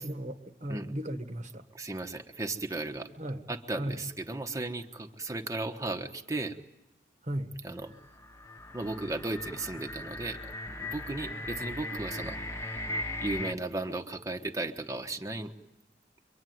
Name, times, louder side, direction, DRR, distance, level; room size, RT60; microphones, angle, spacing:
voice 1, 0.0-1.7 3.2-3.4 3.8-4.0 7.2-7.5, right 1 dB, 40° right, 6 dB, 1.5 m, -36 dB
voice 2, 1.7-3.1 3.5-6.6 7.6-7.9 8.7-12.4 13.2-15.5, right 2 dB, 15° right, 5 dB, 1.3 m, -35 dB
sound 1, 7.9-13.5, left 2 dB, 15° left, 1.3 m, -38 dB
25.5 x 24.5 x 9.4 m, 0.92 s
head